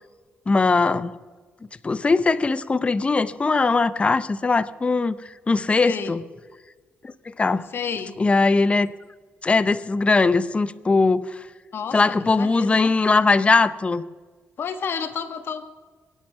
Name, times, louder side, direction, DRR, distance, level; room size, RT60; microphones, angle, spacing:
voice 1, 0.5-1.1 1.8-5.2 5.5-6.2 7.0-7.7 8.2-8.9 9.4-11.4 11.9-14.0, left 3 dB, 30° left, 15 dB, 0.6 m, -20 dB
voice 2, 5.8-6.1 7.7-8.2 11.7-12.9 14.6-15.7, left 6 dB, 60° left, 8 dB, 1.5 m, -30 dB
23.0 x 8.7 x 5.9 m, 1.4 s
cardioid pair, 90°, 4 cm